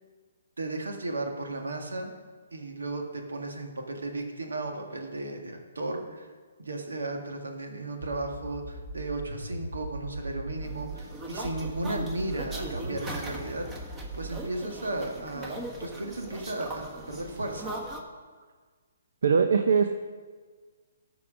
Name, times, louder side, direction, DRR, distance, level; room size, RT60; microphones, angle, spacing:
voice 1, 0.6-2.1 2.5-6.3 6.6-13.7 14.1-17.7, right 2 dB, 85° right, 3 dB, 1.7 m, -35 dB
sound 1, 8.0-11.0 11.4-14.5, right 2 dB, 45° right, 1.4 m, -38 dB
sound 2, 10.6-18.0, right 1 dB, 15° right, 1.3 m, -40 dB
voice 2, 19.2-19.9, right 6 dB, 70° right, 7 dB, 0.6 m, -21 dB
13.5 x 4.8 x 6.1 m, 1.5 s
hypercardioid pair, 140°, 0 cm